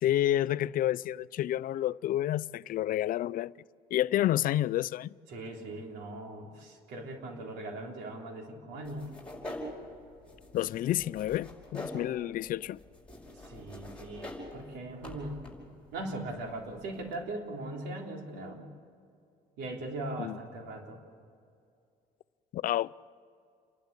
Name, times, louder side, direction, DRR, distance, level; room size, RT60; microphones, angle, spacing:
voice 1, 0.0-3.5 3.9-5.1 10.5-12.8 20.2-20.4 22.5-23.1, left 13 dB, 55° left, 0.4 m, -29 dB
voice 2, 5.3-9.1 13.3-15.4 15.9-18.7 19.6-21.0, right 2 dB, 85° right, 3.5 m, -40 dB
sound 1, 8.8-17.2, left 1 dB, 5° left, 5.5 m, -46 dB
29.0 x 12.0 x 8.3 m
cardioid pair, 110°, 17 cm